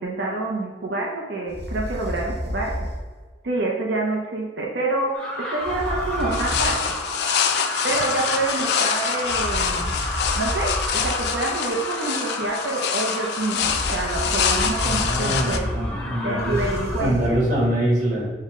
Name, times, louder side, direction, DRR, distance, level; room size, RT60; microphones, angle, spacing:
voice 1, 0.0-2.7 3.4-7.0 7.8-10.0 10.3-15.7 16.2-17.4, right 2 dB, 90° right, -1 dB, 0.6 m, -27 dB
sound 1, 1.5-3.2 5.6-6.9 9.2-11.4 13.5-17.7, equal, 65° right, 0.9 m, -31 dB
sound 2, 5.1-17.0, left 1 dB, 5° left, 0.5 m, -32 dB
sound 3, 6.3-15.6, left 7 dB, 70° left, 0.3 m, -26 dB
voice 2, 14.8-16.6 17.0-18.3, right 1 dB, 45° right, -5 dB, 1.3 m, -24 dB
5.5 x 2.1 x 3.6 m, 1.4 s
head